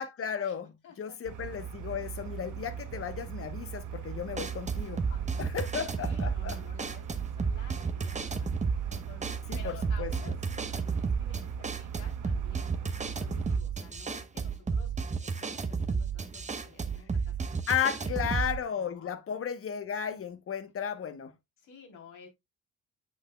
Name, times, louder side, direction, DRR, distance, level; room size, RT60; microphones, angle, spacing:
voice 1, 0.0-5.0 5.4-6.6 9.5-10.1 17.7-21.3, left 8 dB, 45° left, 1.0 m, -34 dB
voice 2, 0.8-1.2 5.1-5.7 6.0-17.6 17.8-18.2 18.8-19.1 21.6-22.3, left 6 dB, 80° left, 3.2 m, -53 dB
sound 1, 1.2-13.6, right 8 dB, 80° right, 1.0 m, -40 dB
sound 2, 4.4-18.6, right 5 dB, 25° right, 0.8 m, -32 dB
8.4 x 6.5 x 2.2 m
cardioid pair, 90°, 30 cm